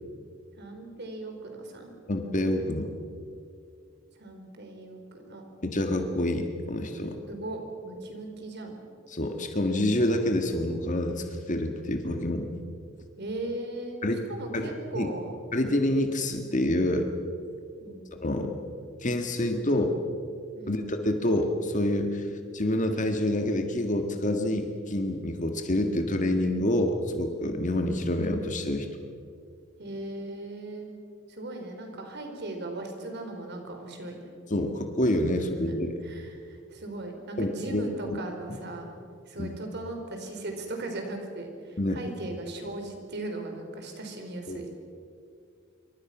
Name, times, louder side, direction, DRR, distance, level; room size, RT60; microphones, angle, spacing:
voice 1, 0.6-1.9 4.2-5.4 7.3-8.8 13.2-14.0 14.3-15.3 17.8-18.0 20.5-20.8 29.8-30.9 31.3-34.2 35.7-35.8 36.0-38.9 39.3-44.7, right 2 dB, 60° right, 4 dB, 4.7 m, -38 dB
voice 2, 2.1-2.9 5.6-7.2 9.1-12.5 14.0-14.2 14.5-14.6 14.9-15.1 15.5-17.1 18.2-18.5 19.0-19.9 20.7-22.3 22.5-28.9 34.5-35.9 37.4-38.2 38.5-38.6 39.4-39.6 41.8-42.0 44.5-44.6, left 1 dB, 40° left, 5 dB, 1.8 m, -27 dB
27.0 x 24.5 x 6.1 m, 2.3 s
head